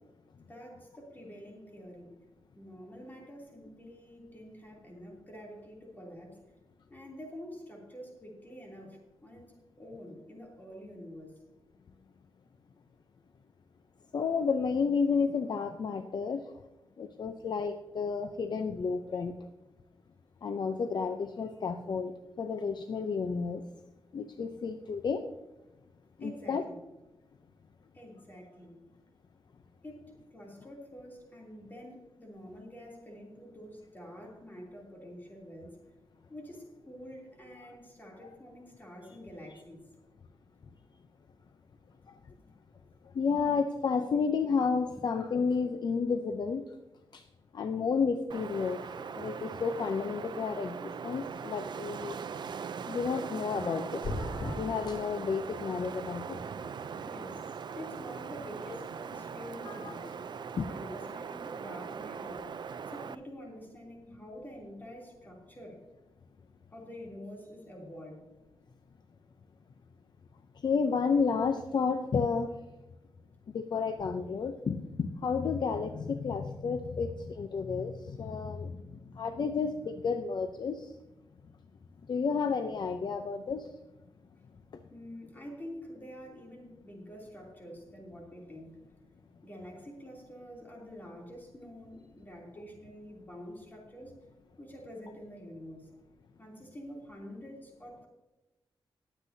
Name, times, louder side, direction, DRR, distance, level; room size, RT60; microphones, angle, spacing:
voice 1, 0.5-2.1 2.5-6.4 6.9-11.4 26.2-26.8 27.9-28.8 29.8-35.8 36.3-39.8 57.0-57.3 57.7-65.8 66.7-68.3 84.9-88.8 89.4-94.1 94.6-95.9 96.4-98.1, equal, 20° left, -2 dB, 3.0 m, -47 dB
voice 2, 14.1-16.4 17.0-19.3 20.4-23.6 24.1-25.2 26.2-26.6 37.6-37.7 38.2-38.3 42.1-42.2 43.0-46.6 47.1-47.2 47.5-52.2 52.9-56.4 59.6-59.9 60.6-60.7 70.6-72.5 73.5-80.9 82.1-83.7, left 5 dB, 50° left, 7 dB, 0.6 m, -31 dB
Wind, 48.3-63.1, right 6 dB, 55° right, 0.4 m, -40 dB
sound 1, 54.0-54.5, left 2 dB, 90° left, 2.7 m, -33 dB
20.0 x 8.2 x 2.7 m, 1.0 s
wide cardioid pair, 145°, 9 cm